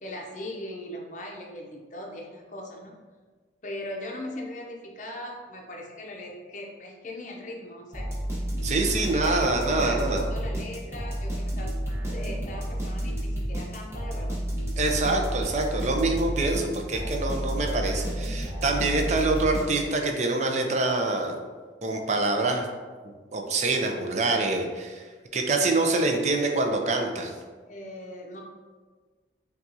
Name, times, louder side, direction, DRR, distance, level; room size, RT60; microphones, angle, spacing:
voice 1, 0.0-3.0 3.6-8.1 9.0-11.7 12.1-14.4 27.7-28.4, left 1 dB, 40° left, 0 dB, 0.6 m, -39 dB
sound 1, 7.9-20.1, equal, 15° right, 0.8 m, -31 dB
voice 2, 8.6-10.2 14.8-21.4 21.8-22.7 23.3-25.1 25.3-27.3, right 2 dB, 40° right, 3 dB, 0.4 m, -25 dB
5.6 x 2.3 x 2.7 m, 1.5 s
head